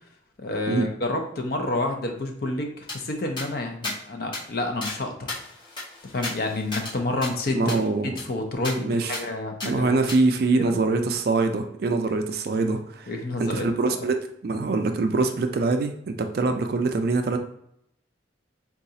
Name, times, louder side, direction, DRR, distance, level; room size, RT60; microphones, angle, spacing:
voice 1, 0.4-5.3 6.1-10.0 10.5-10.8 13.1-13.7 14.0-14.1, left 2 dB, 50° left, 3 dB, 0.5 m, -29 dB
sound 1, 2.9-3.0 3.4-3.5 3.8-4.0 4.3-4.4 4.8-5.0 5.3-6.9 7.2-7.3 7.7-7.8 8.2-8.3 8.6-8.8 9.1-9.2 9.6-9.7 10.1-10.2, left 2 dB, 25° left, 0.8 m, -34 dB
voice 2, 7.5-8.1 8.8-9.3 9.6-13.1 13.4-17.4, right 3 dB, 50° right, 6 dB, 0.3 m, -24 dB
3.9 x 2.3 x 2.7 m, 0.73 s
head